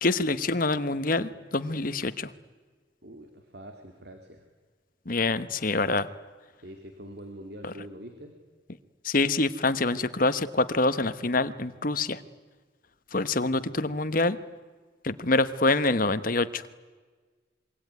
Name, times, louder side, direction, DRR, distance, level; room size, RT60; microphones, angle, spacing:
voice 1, 0.0-2.3 5.1-6.1 7.6-7.7 9.0-12.2 13.1-14.4 15.0-16.6, left 2 dB, 45° left, 12 dB, 1.2 m, -26 dB
voice 2, 3.0-4.4 6.6-8.3 13.6-13.9, equal, 55° right, 5 dB, 2.7 m, -44 dB
26.5 x 23.5 x 9.6 m, 1.4 s
head